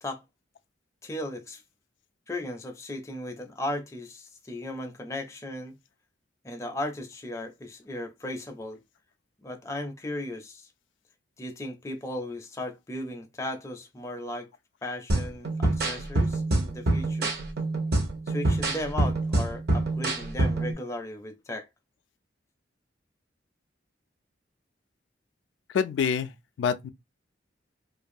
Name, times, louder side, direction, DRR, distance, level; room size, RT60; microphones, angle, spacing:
voice 1, 1.0-1.6 2.3-5.7 6.4-8.8 9.4-10.7 11.4-14.5 14.8-17.3 18.3-21.7, left 1 dB, 15° left, 0.4 m, -36 dB
sound 1, 15.1-20.7, right 2 dB, 60° right, 0.7 m, -26 dB
voice 2, 25.7-26.3 26.6-26.9, left 6 dB, 80° left, 0.3 m, -25 dB
2.5 x 2.2 x 2.5 m
head